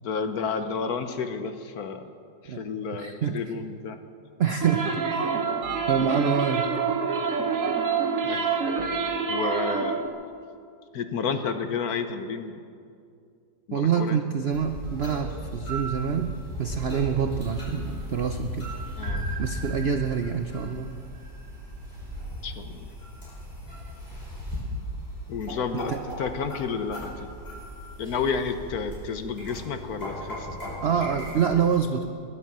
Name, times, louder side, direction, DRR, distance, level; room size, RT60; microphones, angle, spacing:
voice 1, 0.0-2.1 2.4-4.0 8.2-8.6 9.3-10.1 10.9-12.6 13.7-14.3 19.0-19.3 20.6-20.7 22.4-22.9 25.3-27.3 28.0-30.6 31.1-31.7, left 5 dB, 60° left, 8 dB, 1.3 m, -31 dB
voice 2, 3.0-3.3 4.4-5.2 5.9-6.7 13.7-16.3 16.6-18.7 19.4-20.9 25.9-26.0 30.8-32.1, right 7 dB, 75° right, 6 dB, 0.5 m, -26 dB
sound 1, 4.6-10.1, right 5 dB, 50° right, 1.4 m, -27 dB
sound 2, 14.5-31.7, equal, 30° left, 5.8 m, -37 dB
sound 3, 19.0-22.0, right 4 dB, 35° right, 0.8 m, -43 dB
22.0 x 8.3 x 7.4 m, 2.3 s
omnidirectional pair, 2.0 m